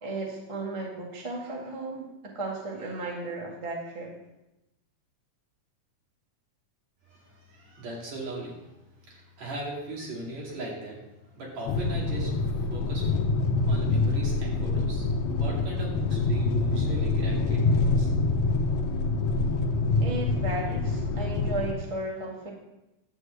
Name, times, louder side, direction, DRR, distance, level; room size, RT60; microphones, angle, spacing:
voice 1, 0.0-2.1 2.3-4.1 20.0-22.5, right 2 dB, 15° right, -2 dB, 1.3 m, -34 dB
voice 2, 7.1-8.7 9.1-11.0 11.3-13.1 13.7-15.1 15.4-18.1, right 2 dB, 65° right, -3 dB, 3.7 m, -38 dB
sound 1, 11.7-21.7, left 3 dB, 75° left, 1.9 m, -26 dB
11.5 x 4.7 x 7.8 m, 0.93 s
omnidirectional pair, 3.4 m